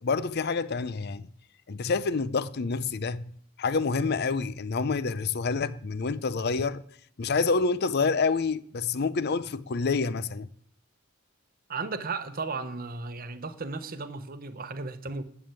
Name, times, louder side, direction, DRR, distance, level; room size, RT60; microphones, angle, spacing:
voice 1, 0.0-1.3 1.7-3.3 3.6-6.8 7.2-10.5, left 4 dB, 45° left, 0.5 m, -27 dB
voice 2, 11.7-15.2, right 4 dB, 40° right, 0.9 m, -35 dB
11.0 x 7.0 x 8.9 m
head